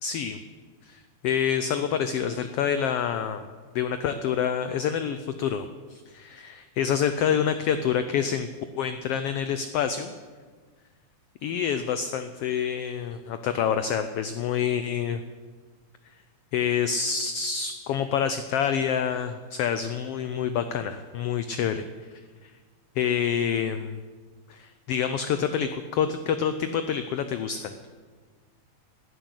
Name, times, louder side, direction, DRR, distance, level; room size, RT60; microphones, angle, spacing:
voice 1, 0.0-0.4 0.8-3.5 3.7-8.5 8.8-10.1 11.4-15.2 16.5-21.8 22.4-22.5 23.0-24.0 24.5-27.7, left 8 dB, 80° left, 10 dB, 1.3 m, -27 dB
12.5 x 10.0 x 10.0 m, 1.5 s
omnidirectional pair, 3.5 m